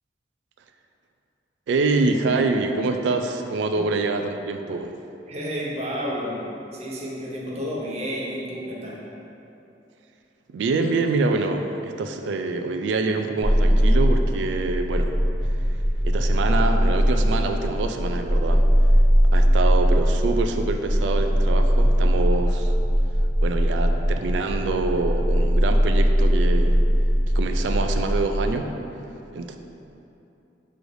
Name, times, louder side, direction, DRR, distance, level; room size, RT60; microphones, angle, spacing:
voice 1, 1.7-4.9 10.5-15.1 16.0-18.6 19.3-22.7 23.4-26.9 27.3-28.7 29.3-29.6, right 3 dB, 75° right, 5 dB, 0.3 m, -25 dB
voice 2, 5.3-6.5 6.7-9.1, equal, 35° right, -5 dB, 0.7 m, -31 dB
sound 1, 13.4-28.6, equal, ahead, 0.4 m, -20 dB
6.3 x 3.1 x 2.6 m, 2.9 s
head